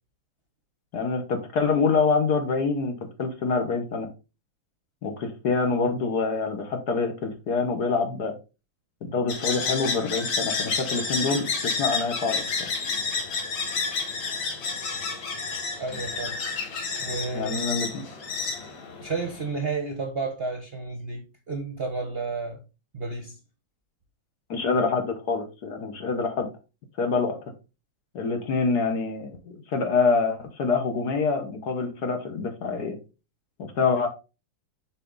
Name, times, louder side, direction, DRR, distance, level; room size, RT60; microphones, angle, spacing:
voice 1, 0.9-4.1 5.0-8.3 9.0-11.5 11.8-12.4 17.3-18.0 24.5-26.5 27.0-27.4 28.1-33.0 33.6-34.1, left 4 dB, 55° left, 1.5 m, -26 dB
sound 1, 9.3-19.5, left 4 dB, 75° left, 2.3 m, -30 dB
voice 2, 15.8-16.4 17.0-17.8 19.0-22.6 22.9-23.3, right 3 dB, 40° right, 0.9 m, -31 dB
7.0 x 4.8 x 3.8 m
omnidirectional pair, 2.2 m